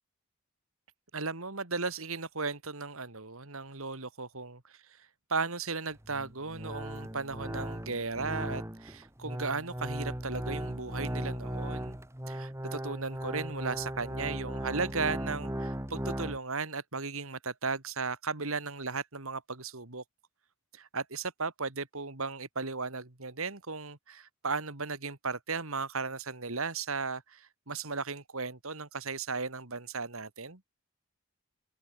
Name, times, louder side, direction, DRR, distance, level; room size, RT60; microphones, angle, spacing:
voice 1, 1.1-12.0 12.3-20.0 20.7-30.6, right 4 dB, 70° right, 2.6 m, -36 dB
sound 1, 5.9-16.4, right 1 dB, 10° right, 1.9 m, -37 dB
head